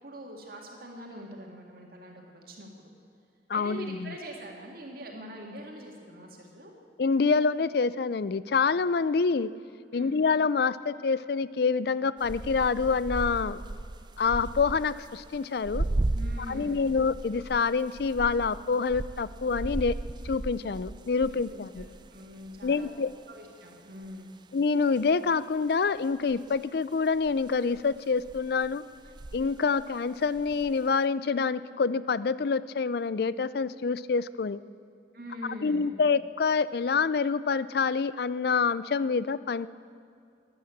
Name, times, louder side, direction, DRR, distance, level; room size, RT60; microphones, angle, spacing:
voice 1, 0.0-2.9 3.5-6.7 9.9-10.1 16.1-17.0 21.3-21.9 22.1-22.9 23.3-24.4 35.1-36.0, equal, 50° right, 0 dB, 2.0 m, -43 dB
voice 2, 3.5-4.1 7.0-9.5 9.9-13.6 14.2-15.8 16.5-20.0 20.2-21.8 22.6-23.1 24.5-28.8 29.3-34.6 35.6-39.7, left 5 dB, 55° left, 17 dB, 0.4 m, -27 dB
sound 1, 12.2-23.2 24.0-24.1 25.0-25.1 26.3-26.6 27.1-29.5 29.8-30.9, right 2 dB, 25° right, 0.4 m, -36 dB
13.0 x 11.0 x 8.4 m, 2.5 s
head